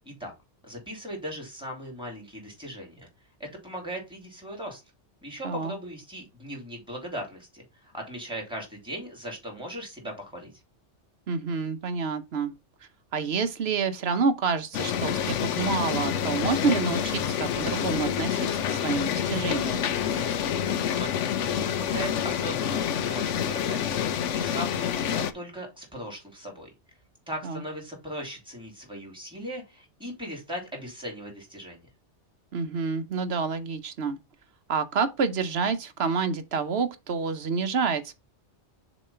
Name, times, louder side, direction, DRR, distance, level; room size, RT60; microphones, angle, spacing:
voice 1, 0.6-3.1 3.4-4.8 5.2-10.5 20.9-21.2 21.5-24.0 24.3-26.7 27.3-31.9, equal, 5° right, 3.2 m, -38 dB
voice 2, 11.3-12.5 13.1-19.9 27.4-27.6 32.5-34.2 34.7-38.1, right 5 dB, 65° right, 1.0 m, -28 dB
sound 1, 14.7-25.3, left 9 dB, 90° left, 1.0 m, -28 dB
6.9 x 3.1 x 5.5 m
omnidirectional pair, 1.2 m